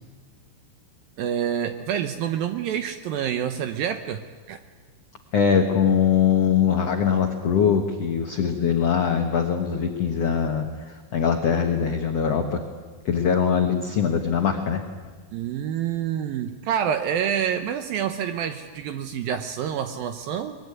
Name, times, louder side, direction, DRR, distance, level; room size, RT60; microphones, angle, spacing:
voice 1, 1.2-4.2 4.5-4.6 15.3-20.6, right 9 dB, 75° right, 8 dB, 2.2 m, -27 dB
voice 2, 5.3-12.6 13.0-14.8, left 7 dB, 80° left, 4 dB, 1.4 m, -22 dB
23.0 x 21.5 x 9.6 m, 1.4 s
omnidirectional pair, 5.0 m